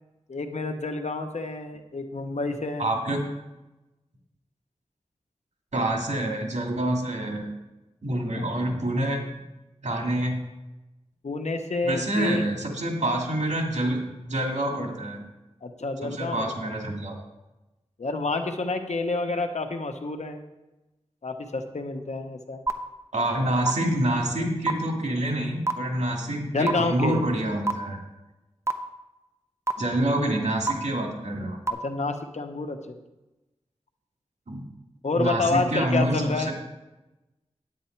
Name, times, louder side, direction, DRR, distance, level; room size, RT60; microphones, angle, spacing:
voice 1, 0.3-3.0 8.3-8.6 11.2-12.4 15.6-16.7 18.0-20.4 21.2-22.6 26.4-27.2 31.8-33.0 35.0-36.5, left 3 dB, 75° left, 6 dB, 1.0 m, -29 dB
voice 2, 2.8-3.2 5.7-7.5 8.0-9.2 9.8-10.3 11.8-15.2 16.0-17.2 23.1-28.0 29.8-31.6 34.5-34.6 35.1-36.5, right 1 dB, 90° right, 0 dB, 2.1 m, -27 dB
sound 1, 22.7-22.8 23.7-23.8 24.7-24.8 25.7-25.8 26.7-26.8 27.7-27.8 28.7-28.8 29.7-29.8 30.7-30.8 31.7-31.8, right 4 dB, 25° right, 0.8 m, -22 dB
9.5 x 9.0 x 4.5 m, 1.0 s
wide cardioid pair, 55°, 12 cm